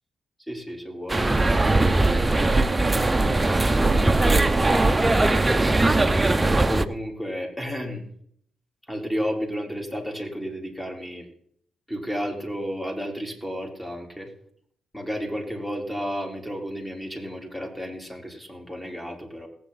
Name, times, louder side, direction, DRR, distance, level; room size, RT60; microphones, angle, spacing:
voice 1, 0.5-6.1 6.6-8.1 8.9-11.3 11.9-14.3 14.9-19.5, equal, 10° left, 1 dB, 3.8 m, -33 dB
sound 1, 1.1-6.9, right 2 dB, 20° right, 0.8 m, -20 dB
18.5 x 9.1 x 4.1 m, 0.65 s
supercardioid pair, 55°, 0 cm